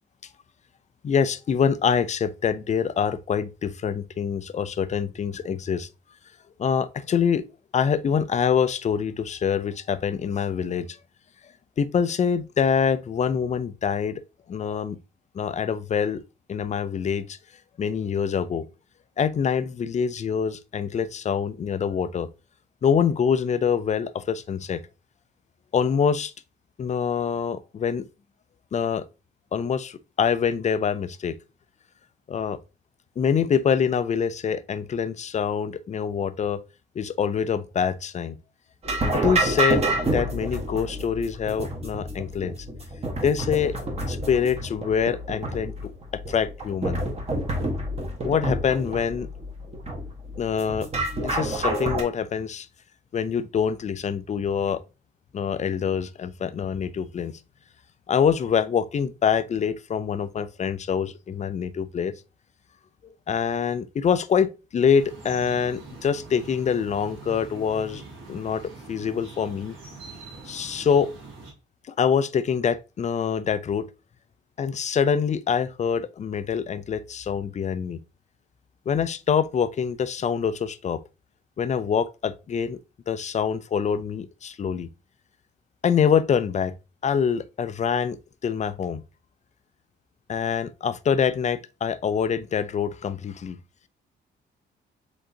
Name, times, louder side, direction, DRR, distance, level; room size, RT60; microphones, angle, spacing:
voice 1, 1.0-5.9 6.6-7.4 7.7-10.9 11.8-14.2 14.5-15.0 15.3-16.2 16.5-17.4 17.8-18.7 19.2-22.3 22.8-24.8 25.7-26.3 26.8-28.0 28.7-29.0 29.5-31.4 32.3-32.6 33.2-36.6 37.0-38.4 39.2-42.6 43.2-43.8 44.1-45.9 46.3-47.0 48.2-49.3 50.4-50.9 51.2-52.7 53.1-54.8 55.3-57.4 58.1-62.1 63.3-68.0 68.3-68.6 68.9-69.8 70.5-71.1 71.9-73.9 74.6-78.0 78.9-81.0 81.6-82.8 83.1-84.9 85.8-86.7 87.0-89.0 90.3-93.6, left 7 dB, 35° left, 0.4 m, -25 dB
sound 1, 38.8-52.0, right 1 dB, 30° right, 1.3 m, -28 dB
sound 2, 64.9-71.5, right 3 dB, 80° right, 2.2 m, -43 dB
5.0 x 3.7 x 2.8 m
cardioid pair, 90°, 20 cm